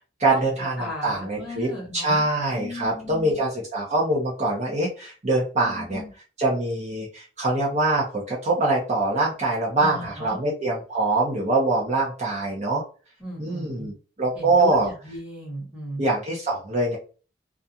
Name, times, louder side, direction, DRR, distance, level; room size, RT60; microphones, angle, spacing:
voice 1, 0.2-6.0 6.4-12.8 13.4-13.9 14.2-14.9 16.0-17.0, right 2 dB, 40° right, -3 dB, 0.7 m, -24 dB
voice 2, 0.8-2.2 2.5-3.4 5.6-6.1 9.8-10.4 13.2-13.9 14.4-16.0, equal, 5° right, -4 dB, 1.1 m, -35 dB
2.4 x 2.3 x 2.7 m, 0.36 s
head